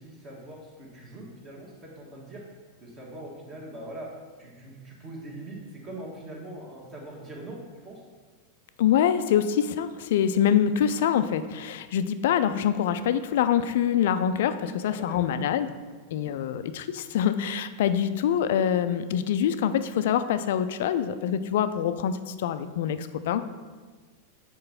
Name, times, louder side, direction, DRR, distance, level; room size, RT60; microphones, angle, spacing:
voice 1, 0.0-2.4 2.8-4.1 4.4-7.6 7.8-8.0 14.6-15.6, right 1 dB, 30° right, -3 dB, 1.3 m, -42 dB
voice 2, 8.8-15.7 16.1-23.4, left 9 dB, 55° left, 11 dB, 0.3 m, -25 dB
4.7 x 4.5 x 5.7 m, 1.4 s
figure-of-eight pair, 90°, 0 cm